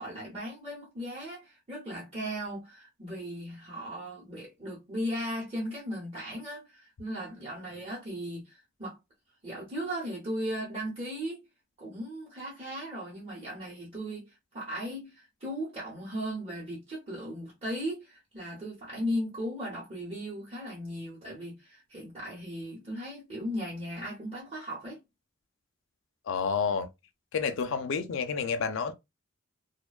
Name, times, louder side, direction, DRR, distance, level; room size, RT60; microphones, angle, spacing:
voice 1, 0.0-9.0 9.4-11.4 11.8-25.0, equal, 25° right, 0.8 m, -37 dB
voice 2, 26.3-26.9 27.3-28.9, left 5 dB, 60° left, 0.4 m, -29 dB
2.5 x 2.1 x 2.3 m
head